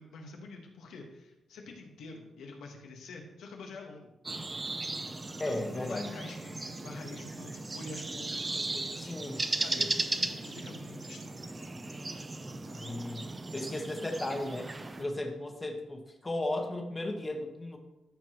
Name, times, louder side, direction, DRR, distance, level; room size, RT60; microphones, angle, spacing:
voice 1, 0.0-4.1 5.3-11.4 13.6-13.8, left 3 dB, 85° left, 2 dB, 1.4 m, -47 dB
sound 1, 4.2-15.0, right 2 dB, 25° right, 0.6 m, -37 dB
voice 2, 5.4-6.1 9.0-9.4 9.7-9.9 12.7-14.7 15.0-17.8, left 1 dB, 20° left, 3 dB, 1.2 m, -35 dB
13.0 x 5.1 x 3.0 m, 0.98 s
cardioid pair, 100°, 0 cm